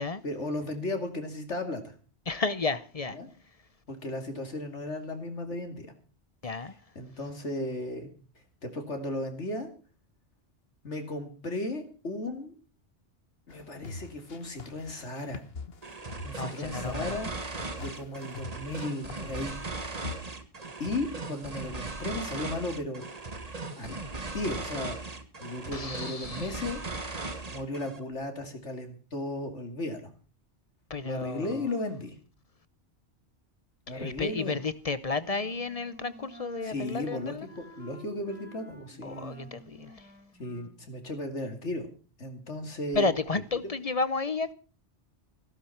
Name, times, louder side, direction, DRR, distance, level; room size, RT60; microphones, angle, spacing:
voice 1, 0.2-1.9 3.1-3.3 3.9-5.9 6.6-8.1 8.6-9.7 10.8-12.5 13.5-15.4 16.2-17.3 17.8-19.6 20.8-23.1 23.8-24.0 24.3-25.0 25.4-27.2 27.4-30.1 31.0-32.1 33.9-34.6 36.6-39.5 40.4-41.9 42.2-43.1, left 2 dB, 85° left, 3.0 m, -35 dB
voice 2, 2.3-3.2 6.4-6.7 16.4-17.2 25.7-26.5 30.9-31.6 33.9-37.5 39.0-40.1 42.9-44.5, left 3 dB, 35° left, 0.8 m, -32 dB
sound 1, 13.5-20.1, left 4 dB, 60° left, 1.5 m, -43 dB
sound 2, 15.8-28.0, right 3 dB, 35° right, 1.5 m, -38 dB
Wind instrument woodwind instrument, 35.2-40.8, right 1 dB, 10° right, 2.9 m, -51 dB
15.5 x 13.0 x 5.8 m
omnidirectional pair, 1.2 m